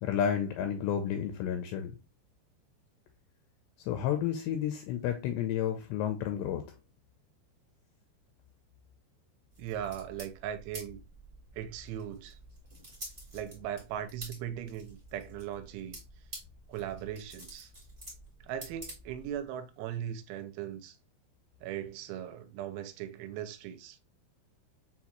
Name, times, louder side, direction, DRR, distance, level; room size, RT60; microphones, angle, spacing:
voice 1, 0.0-2.0 3.8-6.6, left 9 dB, 85° left, 2.5 m, -31 dB
sound 1, 9.5-19.5, right 1 dB, 35° right, 0.7 m, -49 dB
voice 2, 9.6-11.0 11.6-12.4 13.3-16.0 16.7-17.7 18.4-21.0 21.6-24.0, right 10 dB, 85° right, 3.0 m, -39 dB
6.8 x 2.3 x 2.8 m
omnidirectional pair, 5.3 m